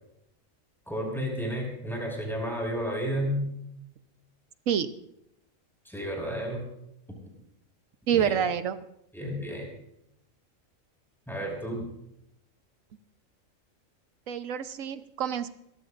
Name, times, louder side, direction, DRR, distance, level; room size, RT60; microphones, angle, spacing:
voice 1, 0.9-3.5 5.9-6.6 8.1-8.5 9.1-9.7 11.3-11.8, equal, ahead, 0 dB, 5.6 m, -32 dB
voice 2, 8.1-8.8 14.3-15.5, right 9 dB, 80° right, 11 dB, 1.3 m, -27 dB
26.5 x 14.0 x 2.5 m, 0.80 s
omnidirectional pair, 1.4 m